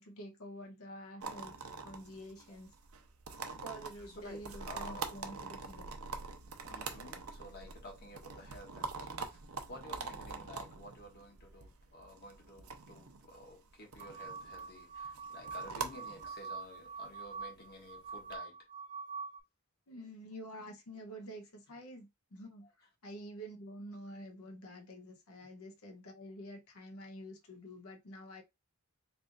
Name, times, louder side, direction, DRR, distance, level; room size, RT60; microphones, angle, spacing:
voice 1, 0.0-1.5 1.8-2.7 3.6-5.9 19.9-22.7 23.0-28.4, equal, 75° left, 0.9 m, -48 dB
sound 1, 1.2-18.4, right 4 dB, 75° right, 0.7 m, -45 dB
voice 2, 4.1-5.3 6.7-9.4 9.7-18.6 22.8-22.9, left 1 dB, 45° left, 1.3 m, -52 dB
sound 2, 14.0-19.4, right 5 dB, 45° right, 1.0 m, -45 dB
3.3 x 2.5 x 3.9 m
head